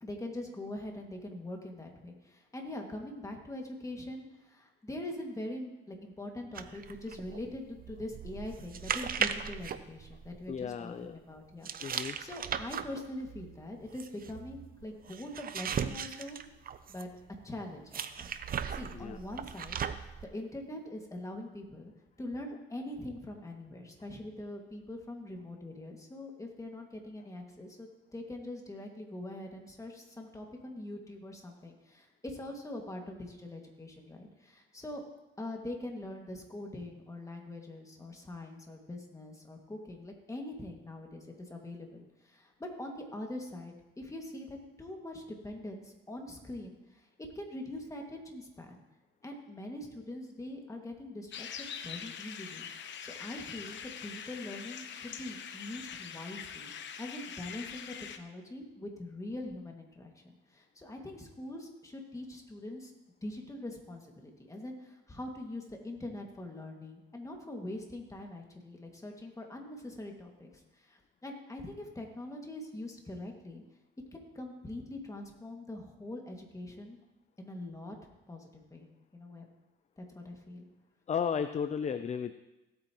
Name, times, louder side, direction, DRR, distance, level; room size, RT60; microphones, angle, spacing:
voice 1, 0.0-16.4 16.9-17.1 17.4-19.8 20.3-21.9 22.2-35.0 35.4-47.1 47.4-48.8 49.2-52.7 53.0-56.7 57.0-62.9 63.2-70.5 70.8-73.6 74.1-77.0 77.4-78.0 78.3-78.9 79.1-79.5 80.0-80.7, left 1 dB, 15° left, 1 dB, 2.1 m, -43 dB
sound 1, 6.5-10.7 11.6-17.2 17.9-20.2, right 7 dB, 45° right, 0.6 m, -38 dB
voice 2, 10.5-11.2 11.8-12.2 18.9-19.2 81.1-82.3, left 7 dB, 35° left, 11 dB, 0.5 m, -34 dB
sound 2, 51.3-58.2, left 8 dB, 65° left, 0.9 m, -43 dB
17.0 x 8.5 x 3.0 m, 1.0 s
cardioid pair, 90°, 20 cm